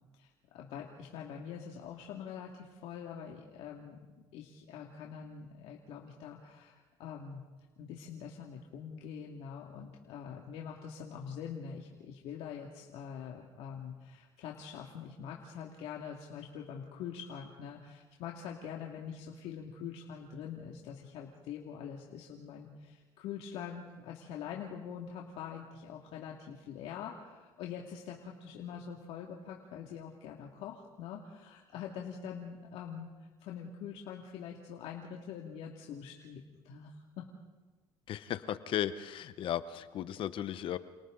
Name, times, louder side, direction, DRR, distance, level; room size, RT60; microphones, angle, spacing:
voice 1, 0.2-4.0 4.3-7.4 7.8-33.1 33.4-37.3, left 7 dB, 70° left, 0 dB, 2.4 m, -44 dB
voice 2, 38.1-40.8, left 11 dB, 55° left, 13 dB, 1.0 m, -35 dB
29.5 x 29.0 x 3.9 m, 1.3 s
cardioid pair, 115°, 11 cm